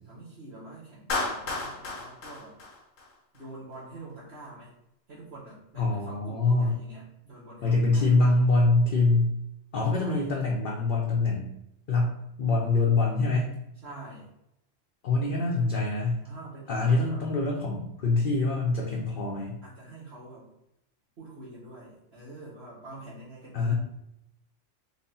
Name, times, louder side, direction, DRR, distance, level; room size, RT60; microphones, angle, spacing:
voice 1, 0.0-2.5 3.3-4.7 5.1-8.2 9.9-10.4 13.8-14.3 16.2-17.3 19.6-20.5 21.2-23.7, right 2 dB, 55° right, -10 dB, 1.5 m, -46 dB
Clapping, 1.1-3.4, left 3 dB, 90° left, 1.2 m, -33 dB
voice 2, 5.8-6.8 7.6-9.3 9.7-11.5 11.9-13.5 15.0-16.3 16.7-19.6 23.5-23.7, left 3 dB, 50° left, -2 dB, 0.7 m, -24 dB
4.1 x 2.2 x 4.0 m, 0.84 s
omnidirectional pair, 1.3 m